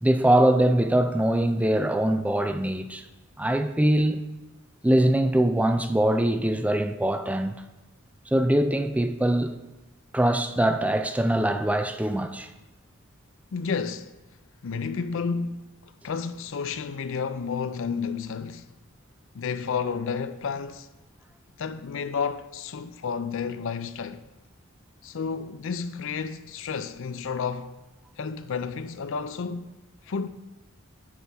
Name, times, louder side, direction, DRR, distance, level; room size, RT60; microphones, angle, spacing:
voice 1, 0.0-3.0 3.4-4.2 4.8-7.6 8.3-9.5 10.1-12.5, right 1 dB, 5° right, 0.4 m, -22 dB
voice 2, 13.5-14.1 14.6-18.7 19.3-20.9 21.6-24.2 25.0-27.7 28.2-29.7 30.1-30.3, left 5 dB, 65° left, 0.5 m, -31 dB
9.6 x 6.2 x 3.5 m
head